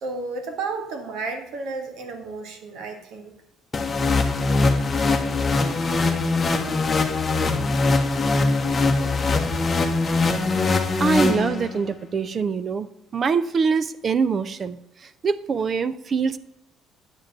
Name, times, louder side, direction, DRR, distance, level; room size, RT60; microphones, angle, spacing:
voice 1, 0.0-3.3, right 3 dB, 70° right, 5 dB, 1.8 m, -32 dB
sound 1, 3.7-11.9, left 3 dB, 20° left, 1.1 m, -22 dB
voice 2, 11.0-12.9 13.1-14.8 15.2-16.4, right 5 dB, 35° right, 15 dB, 0.4 m, -23 dB
9.5 x 5.0 x 7.4 m, 0.84 s
cardioid pair, 135°, 0 cm